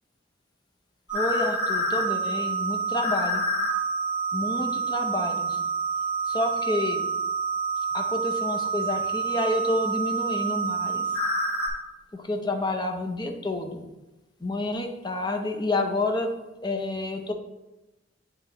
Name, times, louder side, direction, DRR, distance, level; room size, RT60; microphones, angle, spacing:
sound 1, 1.1-11.7, right 3 dB, 70° left, 1.9 m, -28 dB
voice 1, 1.1-3.4 4.3-5.6 6.3-7.0 7.9-11.1 12.1-13.8 14.4-16.3 16.6-17.3, left 2 dB, 25° left, 3 dB, 0.7 m, -29 dB
9.2 x 3.1 x 3.9 m, 1.0 s
head